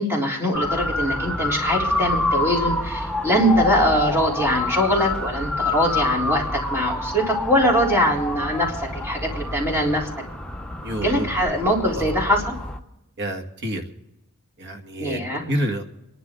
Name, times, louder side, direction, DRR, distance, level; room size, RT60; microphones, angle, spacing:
voice 1, 0.0-10.1 11.0-12.5 15.0-15.4, equal, 10° right, -1 dB, 3.5 m, -22 dB
Motor vehicle (road) / Siren, 0.5-12.8, left 2 dB, 5° left, 0.9 m, -27 dB
voice 2, 10.8-11.6 11.9-12.2 13.2-13.8 14.6-15.2 15.5-15.8, right 1 dB, 55° right, 4 dB, 2.0 m, -28 dB
27.0 x 11.5 x 3.8 m, 0.90 s
head